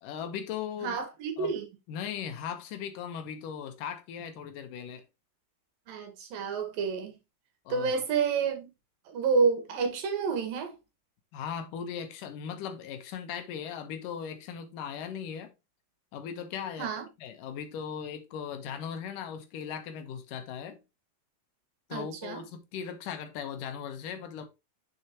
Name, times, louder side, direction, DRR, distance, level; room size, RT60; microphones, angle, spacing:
voice 1, 0.0-1.0 1.4-1.5 1.9-5.0 7.7-7.9 11.3-15.5 16.1-16.9 17.2-20.8 21.9-24.5, left 8 dB, 70° left, 2.5 m, -38 dB
voice 2, 0.8-1.7 5.9-7.1 7.7-8.7 9.1-10.7 16.8-17.1 21.9-22.4, right 5 dB, 65° right, 3.2 m, -29 dB
6.8 x 6.4 x 3.0 m
omnidirectional pair, 4.5 m